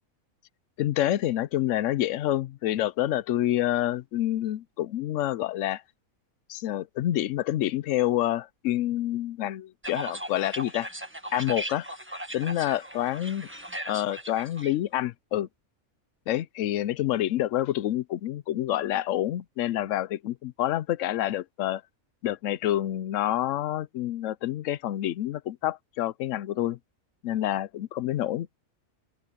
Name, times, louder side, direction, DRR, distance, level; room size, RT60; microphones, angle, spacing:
voice 1, 0.8-5.8 6.5-10.9 11.3-11.9 12.3-13.5 13.9-15.5 16.3-21.8 22.2-26.8 27.2-28.5, left 13 dB, 70° left, 0.9 m, -28 dB
sound 1, 9.8-14.7, right 1 dB, 10° right, 1.5 m, -38 dB
open air
omnidirectional pair, 1.5 m